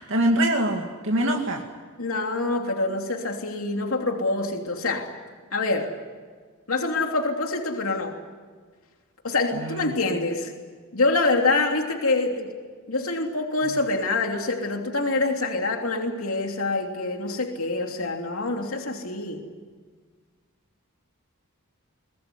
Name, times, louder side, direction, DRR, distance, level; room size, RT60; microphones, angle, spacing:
voice 1, 0.1-1.6 9.5-9.9, right 1 dB, 60° right, 1 dB, 2.4 m, -24 dB
voice 2, 2.0-5.1 5.5-5.9 6.7-8.1 9.2-10.5 10.9-12.5 12.9-19.4, left 3 dB, 70° left, 3 dB, 3.1 m, -26 dB
23.5 x 20.5 x 9.9 m, 1.5 s
head